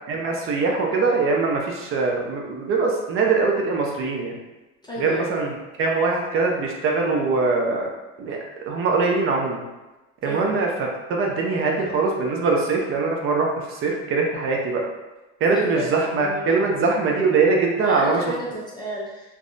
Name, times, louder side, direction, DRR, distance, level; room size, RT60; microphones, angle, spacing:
voice 1, 0.1-4.3 5.0-5.5 5.8-7.9 8.2-9.6 10.2-10.7 11.1-14.8 15.4-18.2, right 4 dB, 40° right, 0 dB, 0.5 m, -22 dB
voice 2, 4.8-5.3 10.2-10.5 15.5-16.5 17.8-19.4, equal, 15° left, -5 dB, 0.4 m, -32 dB
3.4 x 2.1 x 2.5 m, 1.1 s
supercardioid pair, 125°, 33 cm